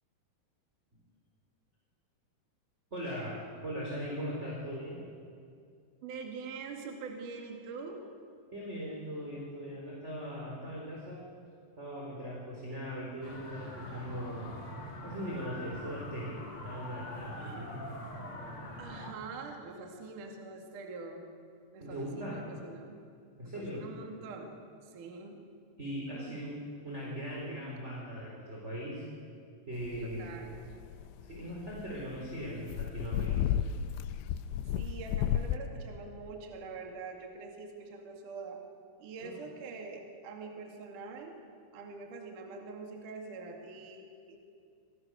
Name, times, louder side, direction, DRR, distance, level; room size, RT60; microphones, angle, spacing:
voice 1, 2.9-5.0 8.5-11.3 11.8-14.5 15.0-17.9 21.8-22.4 23.4-23.9 25.8-26.6 26.8-29.0 29.7-30.3 31.2-33.6 39.2-39.4, equal, 15° right, -3 dB, 3.9 m, -39 dB
voice 2, 6.0-8.0 17.4-17.7 18.8-21.2 21.7-23.0 23.4-24.5 24.8-25.4 26.1-26.5 27.3-27.6 30.0-30.6 34.7-38.6 39.0-41.4 41.7-44.4, right 4 dB, 50° right, 2 dB, 3.3 m, -44 dB
sound 1, 13.2-19.1, left 1 dB, 35° left, 3.0 m, -44 dB
sound 2, 29.9-35.6, left 10 dB, 80° left, 2.9 m, -33 dB
27.0 x 24.0 x 6.4 m, 2.3 s
omnidirectional pair, 5.6 m